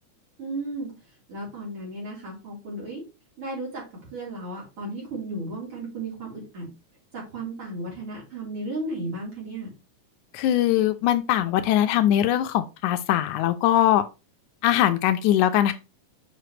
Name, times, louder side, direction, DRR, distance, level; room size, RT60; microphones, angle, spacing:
voice 1, 0.4-0.9 1.3-3.0 3.4-3.8 4.1-6.7 7.1-9.7, right 2 dB, 45° right, 4.3 m, -34 dB
voice 2, 10.3-14.0 14.6-15.7, left 12 dB, 85° left, 2.0 m, -21 dB
7.8 x 4.9 x 3.2 m
omnidirectional pair, 3.5 m